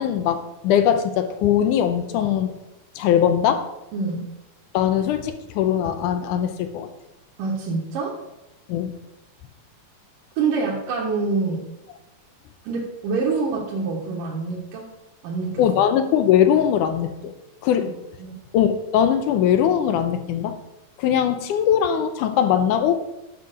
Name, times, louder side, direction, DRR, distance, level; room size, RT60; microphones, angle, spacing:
voice 1, 0.0-2.5 3.0-3.7 4.7-6.9 8.7-8.9 15.6-17.3 17.6-17.9 18.5-20.6 21.0-22.9, left 9 dB, 80° left, 9 dB, 2.0 m, -20 dB
voice 2, 3.9-4.2 7.4-8.2 10.4-11.6 12.6-14.9 15.2-15.6 17.8-17.9 18.2-18.3, right 4 dB, 75° right, -4 dB, 2.9 m, -26 dB
10.0 x 5.6 x 6.5 m, 0.95 s
omnidirectional pair, 4.0 m